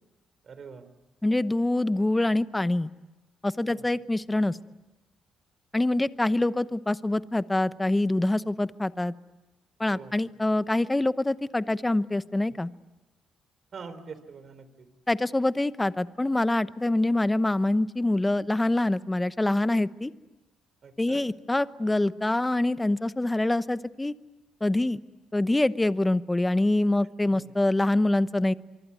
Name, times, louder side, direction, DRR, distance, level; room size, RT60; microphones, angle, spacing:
voice 1, 0.5-0.8 3.7-3.8 9.9-10.1 13.7-14.9 20.8-21.2 27.3-27.5, right 5 dB, 50° right, 12 dB, 3.6 m, -44 dB
voice 2, 1.2-2.9 3.4-4.6 5.7-9.1 9.8-12.7 15.1-20.1 21.0-24.1 24.6-25.0 25.3-28.5, left 2 dB, 15° left, 14 dB, 0.9 m, -25 dB
25.5 x 24.0 x 9.6 m, 1.1 s
cardioid pair, 90°, 0 cm